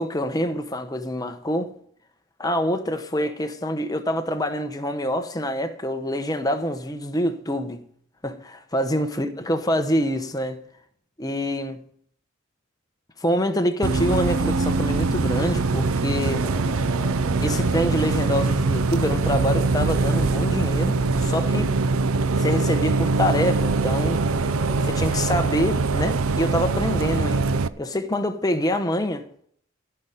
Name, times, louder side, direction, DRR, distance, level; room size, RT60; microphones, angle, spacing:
voice 1, 0.0-1.8 2.4-7.8 8.2-10.6 11.2-11.8 13.2-16.5 17.4-21.7 22.4-24.2 24.8-29.3, equal, 15° left, 0.9 m, -26 dB
Bus, 13.8-27.7, right 3 dB, 75° right, 0.6 m, -23 dB
sound 1, 16.4-25.6, left 1 dB, ahead, 1.7 m, -40 dB
14.5 x 5.8 x 9.1 m
head